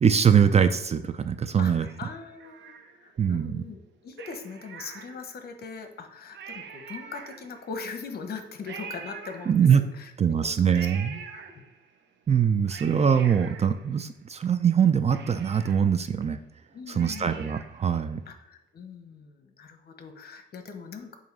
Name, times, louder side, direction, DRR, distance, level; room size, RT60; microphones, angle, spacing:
voice 1, 0.0-1.9 3.2-3.6 9.5-9.8 10.2-11.2 12.3-16.4 16.9-18.2, right 7 dB, 35° right, 10 dB, 0.5 m, -22 dB
voice 2, 1.6-11.2 11.5-11.6 16.7-17.4 18.3-21.2, left 5 dB, 50° left, 6 dB, 1.0 m, -41 dB
Cat, 1.8-3.3 4.1-5.5 6.0-6.1 6.3-7.8 8.6-10.0 10.7-12.0 12.4-14.4 14.8-14.9 15.1-17.9 18.3-18.4, right 6 dB, 65° right, 0.9 m, -45 dB
7.6 x 2.8 x 5.4 m, 0.89 s
cardioid pair, 90°, 20 cm